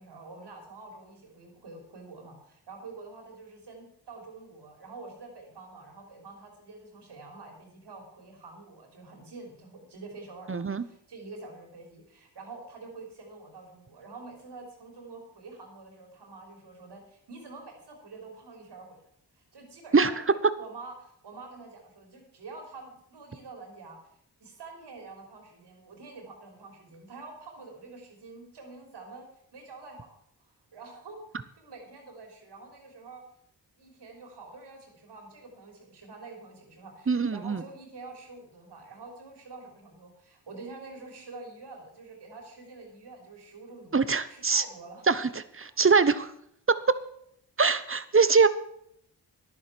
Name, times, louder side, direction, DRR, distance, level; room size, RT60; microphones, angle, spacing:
voice 1, 0.0-19.1 19.4-24.0 24.4-30.1 30.4-33.2 33.8-45.0, right 3 dB, 80° right, 2 dB, 3.6 m, -47 dB
voice 2, 10.5-10.8 19.9-20.1 37.1-37.6 43.9-44.6 45.1-46.3 47.6-48.5, right 4 dB, 30° right, 14 dB, 1.0 m, -23 dB
10.5 x 10.0 x 6.1 m, 0.71 s
cardioid pair, 45°, 41 cm